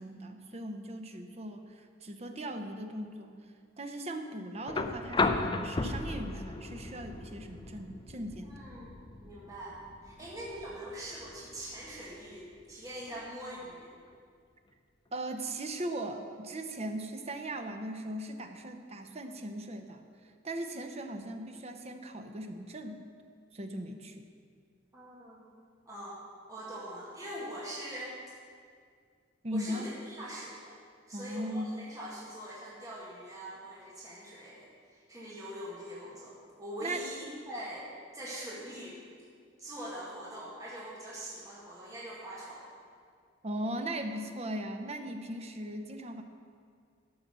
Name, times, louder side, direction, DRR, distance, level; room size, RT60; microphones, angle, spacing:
voice 1, 0.0-3.4 3.8-8.6 10.2-10.3 15.1-20.0 20.4-23.0 23.5-24.3 29.4-29.9 31.1-31.8 36.8-37.0 43.4-46.2, right 1 dB, 35° right, 6 dB, 0.8 m, -38 dB
sound 1, 4.7-12.7 14.1-14.2, left 3 dB, 25° left, 0.5 m, -36 dB
voice 2, 8.5-13.9 24.9-25.6 25.9-28.1 29.5-30.8 31.1-39.0 39.6-42.7, equal, 20° right, -7 dB, 1.8 m, -43 dB
12.5 x 5.8 x 6.8 m, 2.2 s
head